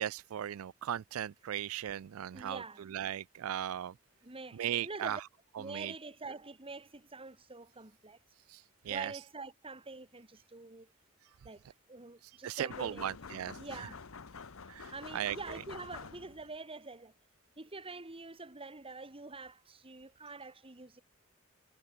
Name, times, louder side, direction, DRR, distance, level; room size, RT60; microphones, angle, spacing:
voice 1, 0.0-2.6 2.9-3.9 4.5-5.2 5.7-5.9 8.5-9.1 12.4-13.6 14.7-15.4, right 10 dB, 80° right, 0.4 m, -37 dB
voice 2, 2.3-2.9 4.2-5.2 5.6-8.2 8.9-10.9 11.4-13.1 13.5-14.1 14.9-17.1 17.6-21.0, right 3 dB, 25° right, 2.2 m, -46 dB
sound 1, 12.7-16.6, left 5 dB, 70° left, 0.9 m, -48 dB
head